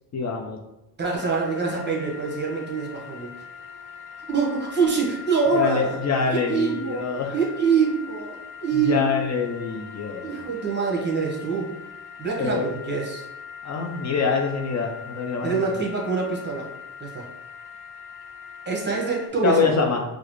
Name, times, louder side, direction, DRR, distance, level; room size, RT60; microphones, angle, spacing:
voice 1, 0.1-0.6 5.5-7.3 8.8-10.5 12.4-12.7 13.6-15.7 19.4-20.0, left 5 dB, 40° left, 1 dB, 0.6 m, -25 dB
voice 2, 1.0-3.3 4.3-6.0 6.3-7.1 7.3-8.4 8.6-9.2 10.2-11.7 12.2-13.2 15.4-16.7 17.0-17.3 18.6-19.7, right 5 dB, 25° right, -2 dB, 1.1 m, -25 dB
sound 1, 1.1-19.3, left 6 dB, 70° left, 1.0 m, -41 dB
4.7 x 2.1 x 3.0 m, 0.92 s
cardioid pair, 90°, 40 cm